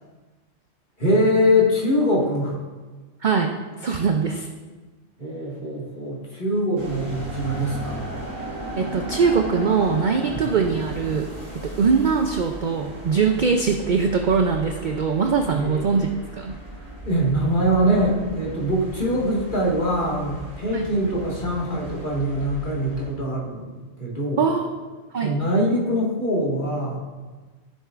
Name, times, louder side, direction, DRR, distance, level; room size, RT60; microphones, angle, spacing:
voice 1, 1.0-2.6 5.2-8.0 10.3-10.4 15.5-15.9 17.0-23.7 24.0-24.4 25.2-27.0, equal, 40° left, -5 dB, 2.0 m, -23 dB
voice 2, 3.2-4.5 8.8-16.6 20.7-20.9 24.4-24.7 25.1-25.3, right 5 dB, 55° right, 4 dB, 0.5 m, -22 dB
sound 1, 6.8-23.1, right 1 dB, 80° right, 2.3 m, -36 dB
13.5 x 7.2 x 2.5 m, 1.3 s
omnidirectional pair, 1.3 m